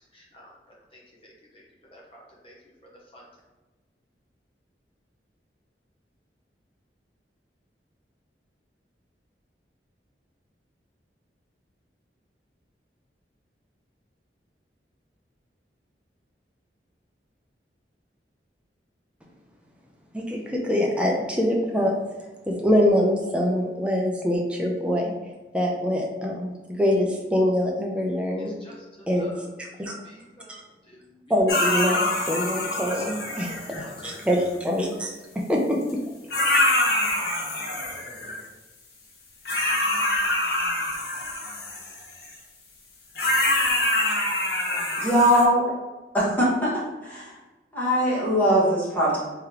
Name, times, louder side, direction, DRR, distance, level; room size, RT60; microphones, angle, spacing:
voice 1, 0.1-0.5 0.9-1.6 1.9-2.5 3.1-3.2 28.4-29.4 29.8-31.2 32.8-33.4 33.8-34.2 44.7-45.0, equal, 30° left, -3 dB, 0.7 m, -48 dB
voice 2, 20.1-25.1 25.5-28.5 29.1-30.0 30.5-30.6 31.3-36.0 36.4-36.5, equal, 5° right, -1 dB, 0.4 m, -25 dB
sound 1, 31.5-34.3 35.9-36.0 36.3-38.4 39.5-42.4 43.2-45.4, left 1 dB, 60° left, 0.8 m, -25 dB
voice 3, 45.0-45.7 46.1-47.3 47.7-49.2, equal, 10° left, -8 dB, 1.3 m, -21 dB
3.6 x 3.3 x 2.9 m, 1.2 s
head